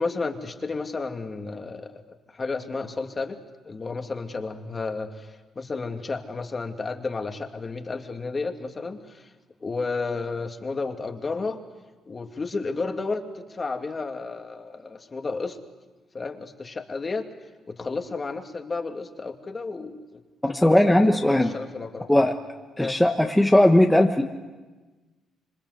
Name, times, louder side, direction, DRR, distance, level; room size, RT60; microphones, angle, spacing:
voice 1, 0.0-2.0 2.3-3.4 3.6-9.3 9.6-11.6 12.1-15.6 16.1-17.2 17.8-20.2 20.5-22.2 22.8-23.0, left 3 dB, 30° left, 5 dB, 2.5 m, -32 dB
voice 2, 20.4-21.5 22.1-22.4 22.8-24.2, left 1 dB, 5° left, 2 dB, 1.4 m, -18 dB
26.5 x 25.0 x 8.1 m, 1.2 s
cardioid pair, 105°, 0 cm